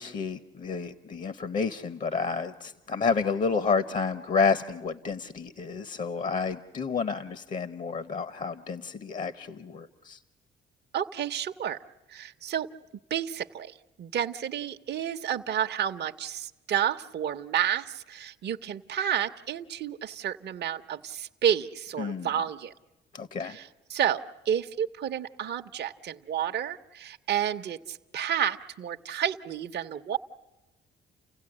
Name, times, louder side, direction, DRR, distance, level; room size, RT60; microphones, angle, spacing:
voice 1, 0.0-10.2 22.0-22.3 23.1-23.6, left 5 dB, 40° left, 14 dB, 0.8 m, -30 dB
voice 2, 10.9-11.8 12.1-12.7 13.1-22.7 23.4-30.2, right 9 dB, 60° right, 6 dB, 0.9 m, -30 dB
30.0 x 16.5 x 9.9 m, 1.0 s
cardioid pair, 90°, 20 cm